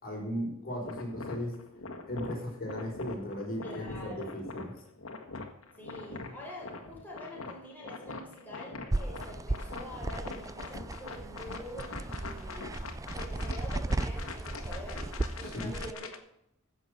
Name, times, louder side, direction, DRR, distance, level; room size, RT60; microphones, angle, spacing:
voice 1, 0.0-1.6 2.1-4.7 15.4-15.7, equal, 45° left, -1 dB, 5.4 m, -36 dB
sound 1, 0.8-16.2, left 3 dB, 85° left, 1.8 m, -43 dB
voice 2, 3.6-4.3 5.8-12.7 13.1-16.1, left 1 dB, 10° left, -4 dB, 4.4 m, -46 dB
sound 2, 8.9-15.9, right 2 dB, 15° right, 0.4 m, -36 dB
16.0 x 6.9 x 6.8 m, 0.78 s
head